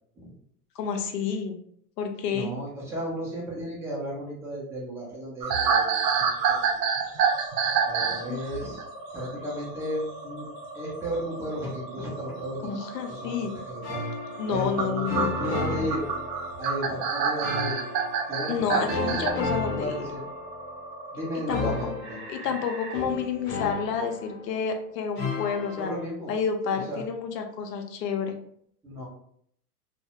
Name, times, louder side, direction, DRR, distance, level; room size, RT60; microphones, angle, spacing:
voice 1, 0.8-1.6 2.0-2.5 8.3-8.4 12.6-13.5 14.4-15.8 18.5-19.9 21.5-21.9 22.3-25.9 26.3-28.4, left 6 dB, 85° left, 5 dB, 0.7 m, -30 dB
voice 2, 2.3-7.2 7.9-8.9 9.1-10.5 10.7-12.8 13.1-14.0 14.5-16.0 16.6-17.8 18.3-19.3 19.7-20.2 21.1-22.2 25.8-26.3 26.7-27.0 28.8-29.1, equal, 5° right, -6 dB, 0.4 m, -34 dB
sound 1, 5.4-8.2 8.5-8.8 11.0-11.2 12.5-12.6 14.5-19.3, right 6 dB, 90° right, 0.6 m, -26 dB
sound 2, 7.2-23.0, right 2 dB, 25° right, 0.9 m, -42 dB
sound 3, 13.8-14.7 15.1-16.8 17.4-18.4 18.9-20.8 21.5-24.7 25.2-26.1, left 4 dB, 35° left, 0.7 m, -33 dB
2.3 x 2.1 x 2.8 m, 0.66 s
hypercardioid pair, 135°, 47 cm